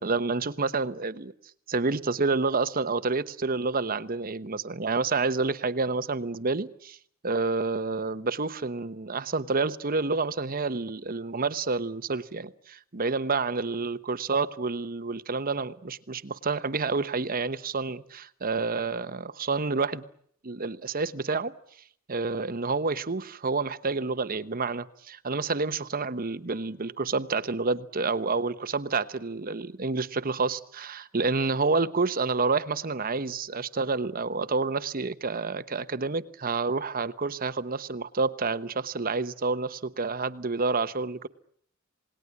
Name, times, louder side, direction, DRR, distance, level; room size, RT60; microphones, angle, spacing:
voice 1, 0.0-1.3 1.7-7.0 7.2-20.0 20.4-21.5 22.1-41.3, right 4 dB, 45° right, 13 dB, 1.0 m, -29 dB
28.0 x 19.0 x 9.7 m, 0.67 s
head